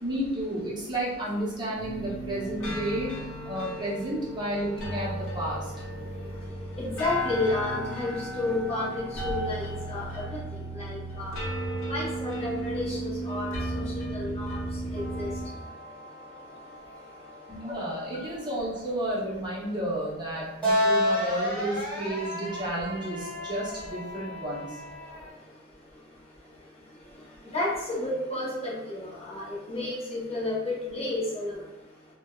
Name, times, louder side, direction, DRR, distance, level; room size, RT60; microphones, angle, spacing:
voice 1, 0.0-3.1 3.4-5.7 17.5-24.8, right 1 dB, 20° right, -6 dB, 0.6 m, -32 dB
sound 1, 1.8-15.5, right 1 dB, 65° left, 0.6 m, -35 dB
voice 2, 6.0-11.4 11.9-15.6 25.2-25.3 27.1-31.7, left 2 dB, 30° left, -5 dB, 0.7 m, -32 dB
sound 2, 14.9-25.3, left 1 dB, 5° left, 1.3 m, -33 dB
3.2 x 2.0 x 2.2 m, 1.0 s
head